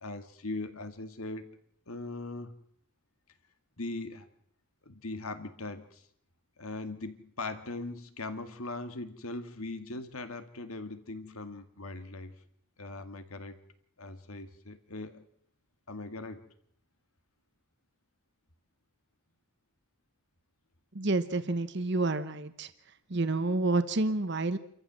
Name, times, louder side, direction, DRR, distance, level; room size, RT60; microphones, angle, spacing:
voice 1, 0.0-1.5 1.9-2.6 3.8-4.3 4.8-6.0 6.6-12.3 12.8-13.6 14.0-15.2 15.9-16.4, left 2 dB, 85° left, 9 dB, 2.1 m, -40 dB
voice 2, 20.9-22.7 23.1-24.6, right 2 dB, 55° right, 12 dB, 1.1 m, -29 dB
28.5 x 14.5 x 7.6 m, 0.68 s
head